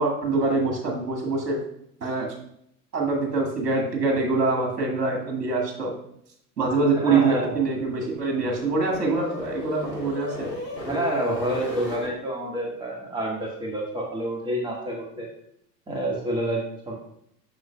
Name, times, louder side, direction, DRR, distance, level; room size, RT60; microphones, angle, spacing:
voice 1, 0.0-1.6 2.0-2.3 2.9-5.9 6.6-10.5, right 3 dB, 75° right, 0 dB, 1.9 m, -24 dB
voice 2, 7.0-7.5 10.8-15.3 15.9-17.0, right 1 dB, 10° right, -2 dB, 1.8 m, -28 dB
sound 1, 7.4-12.1, left 1 dB, 80° left, 1.6 m, -36 dB
8.0 x 6.4 x 2.4 m, 0.71 s
figure-of-eight pair, 85°, 49 cm